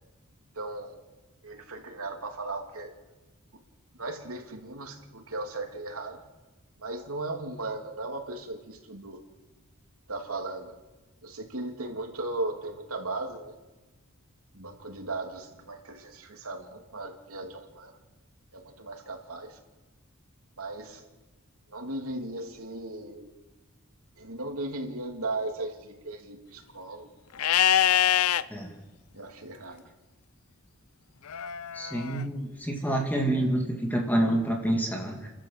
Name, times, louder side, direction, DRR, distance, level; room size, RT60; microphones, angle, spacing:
voice 1, 0.5-1.0 1.4-3.0 3.5-3.6 4.0-6.2 6.8-9.2 10.1-10.8 11.2-13.6 14.5-17.9 18.5-19.6 20.6-21.0 21.7-23.3 24.2-27.1 29.1-29.9, right 2 dB, 85° right, 3 dB, 3.1 m, -37 dB
Livestock farm animals working animals, 27.4-28.4 31.3-32.2, left 11 dB, 85° left, 0.6 m, -24 dB
voice 2, 31.7-35.3, right 1 dB, 10° left, 1 dB, 2.7 m, -27 dB
30.0 x 12.5 x 7.8 m, 1.2 s
head